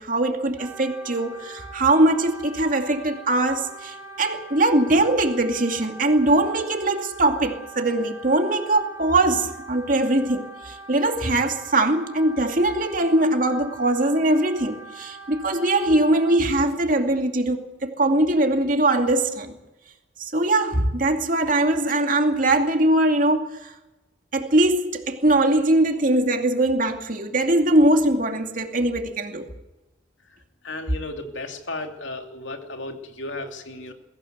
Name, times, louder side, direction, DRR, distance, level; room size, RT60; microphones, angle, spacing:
voice 1, 0.0-19.6 20.2-23.7 24.3-29.5, right 2 dB, 45° right, 2.5 m, -21 dB
Wind instrument woodwind instrument, 0.6-16.4, right 2 dB, 15° right, 3.1 m, -42 dB
voice 2, 30.6-33.9, left 2 dB, 80° left, 2.8 m, -34 dB
22.0 x 16.5 x 8.1 m
head